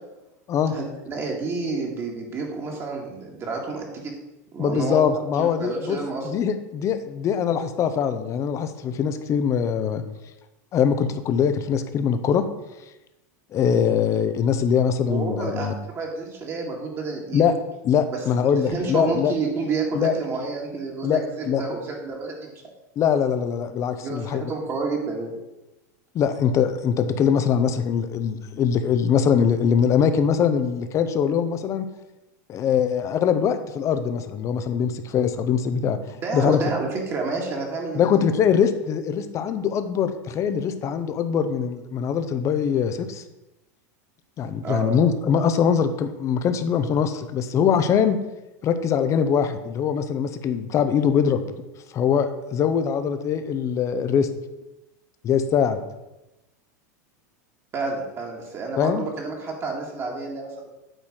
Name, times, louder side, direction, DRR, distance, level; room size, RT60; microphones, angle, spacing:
voice 1, 0.7-4.1 4.5-5.1 5.4-6.3 15.1-17.4 18.1-22.5 24.0-25.3 36.2-38.2 44.6-44.9 57.7-60.7, right 3 dB, 30° right, 0 dB, 1.9 m, -30 dB
voice 2, 4.6-6.0 6.2-10.0 10.7-12.4 13.5-15.7 17.3-17.6 17.8-19.3 19.9-20.1 21.0-21.6 23.0-24.4 26.1-31.8 32.5-36.0 36.3-36.6 37.9-43.2 44.4-48.2 48.6-51.4 51.9-54.3 55.2-55.8 58.8-59.0, left 7 dB, 35° left, 10 dB, 0.8 m, -22 dB
9.0 x 4.1 x 6.4 m, 0.98 s
supercardioid pair, 125°, 9 cm